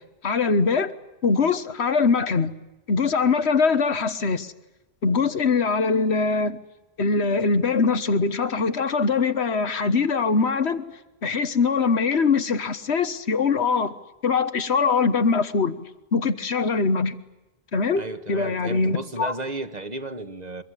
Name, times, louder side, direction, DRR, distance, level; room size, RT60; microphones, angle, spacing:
voice 1, 0.2-0.9 1.2-2.5 2.9-4.5 5.0-6.6 7.0-10.8 11.2-14.0 14.2-17.2 17.7-18.0 18.3-19.3, left 4 dB, 85° left, 1.7 m, -22 dB
voice 2, 17.9-20.6, right 2 dB, 40° right, 1.6 m, -33 dB
25.0 x 21.5 x 9.9 m
omnidirectional pair, 1.1 m